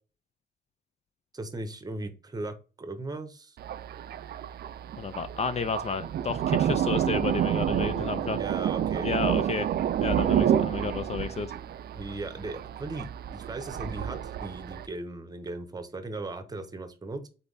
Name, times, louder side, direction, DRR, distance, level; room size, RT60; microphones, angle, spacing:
voice 1, 1.3-3.6 8.3-9.1 11.9-17.3, right 2 dB, 20° right, 0.9 m, -38 dB
Thunder, 3.6-14.9, right 10 dB, 65° right, 0.4 m, -29 dB
voice 2, 5.0-8.4 9.0-9.7 10.0-11.5, left 5 dB, 40° left, 0.4 m, -31 dB
4.1 x 3.3 x 3.9 m
wide cardioid pair, 125°, 17 cm